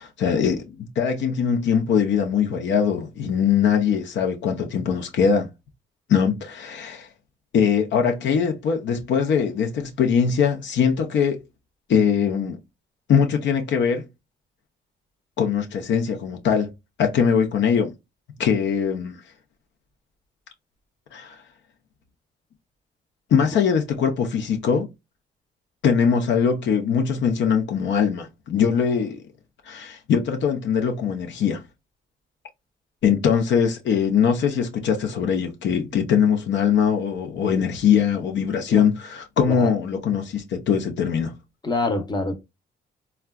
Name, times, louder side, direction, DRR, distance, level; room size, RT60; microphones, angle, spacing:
voice 1, 0.0-5.5 6.1-7.1 7.5-11.4 11.9-12.6 13.1-14.0 15.4-16.7 17.0-17.9 18.4-19.2 21.1-21.4 23.3-24.9 25.8-29.2 29.7-31.6 33.0-41.3, left 7 dB, 65° left, 0.7 m, -21 dB
voice 2, 41.6-42.3, left 2 dB, 20° left, 0.8 m, -25 dB
3.5 x 2.3 x 2.2 m
cardioid pair, 90°, 20 cm